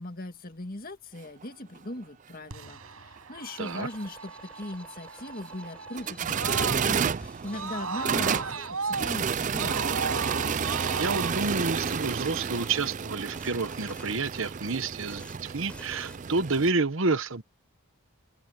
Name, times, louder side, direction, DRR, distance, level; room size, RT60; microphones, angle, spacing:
voice 1, 0.0-9.9, left 1 dB, 40° left, 2.1 m, -39 dB
sound 1, 1.4-1.5 1.8-1.9 4.2-4.3 5.7-16.7, right 6 dB, 35° right, 0.4 m, -31 dB
Screaming, 2.5-7.1 7.5-11.3, right 4 dB, 80° right, 6.1 m, -36 dB
sound 2, 3.4-8.7 9.0-9.5 9.9-10.3 11.1-12.8 13.2-14.4 14.9-15.4 15.7-16.2, left 1 dB, 5° left, 5.3 m, -51 dB
voice 2, 3.6-3.9 10.9-17.4, right 3 dB, 60° right, 1.1 m, -29 dB
head